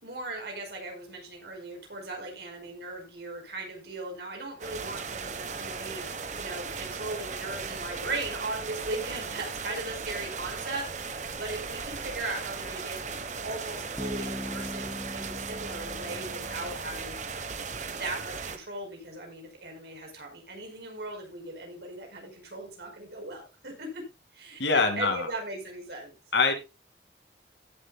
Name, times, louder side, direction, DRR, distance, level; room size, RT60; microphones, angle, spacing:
voice 1, 0.0-13.0 13.4-17.2 17.8-24.0 24.3-26.1, right 2 dB, 65° right, 3 dB, 5.1 m, -38 dB
sound 1, 4.6-18.6, right 5 dB, 40° right, 1.2 m, -37 dB
Bass guitar, 14.0-17.7, left 1 dB, ahead, 1.2 m, -41 dB
voice 2, 24.6-25.3 26.3-26.5, left 4 dB, 75° left, 6 dB, 2.5 m, -24 dB
16.5 x 8.0 x 2.3 m, 0.26 s
head